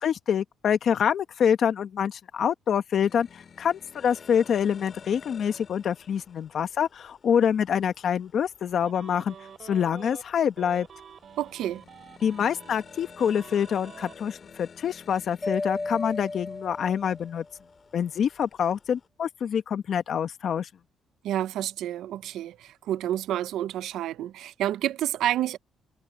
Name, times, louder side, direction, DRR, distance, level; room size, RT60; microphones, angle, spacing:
voice 1, 0.0-9.3 9.6-10.9 12.2-17.4 17.9-20.7, left 8 dB, 60° left, 1.0 m, -26 dB
sound 1, 2.9-19.1, left 6 dB, 45° left, 2.3 m, -52 dB
sound 2, 8.8-10.2 10.6-14.2, right 7 dB, 55° right, 2.9 m, -47 dB
voice 2, 11.4-11.8 21.2-25.6, right 12 dB, 80° right, 0.5 m, -29 dB
Mallet percussion, 15.4-17.5, left 2 dB, 20° left, 0.5 m, -34 dB
cardioid pair, 90°, 0 cm